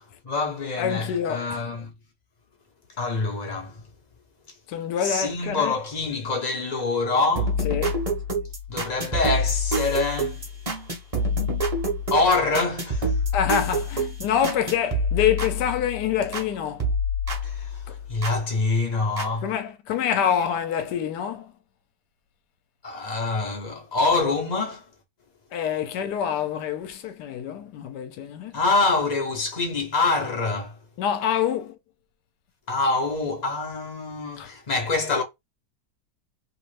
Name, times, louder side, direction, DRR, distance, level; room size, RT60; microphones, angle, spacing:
voice 1, 0.2-1.9 3.0-3.8 5.0-7.6 8.7-10.4 12.1-13.2 17.4-19.5 22.8-24.9 28.5-30.8 32.7-35.2, left 3 dB, 40° left, 0.6 m, -25 dB
voice 2, 0.8-1.6 4.7-5.7 7.6-8.0 13.3-16.9 17.9-18.0 19.4-21.5 25.5-28.6 31.0-31.8 34.4-34.5, left 9 dB, 75° left, 1.2 m, -26 dB
sound 1, 7.4-16.5 16.8-18.4 19.2-19.3, equal, 25° right, 0.8 m, -27 dB
3.0 x 2.5 x 3.2 m
omnidirectional pair, 1.9 m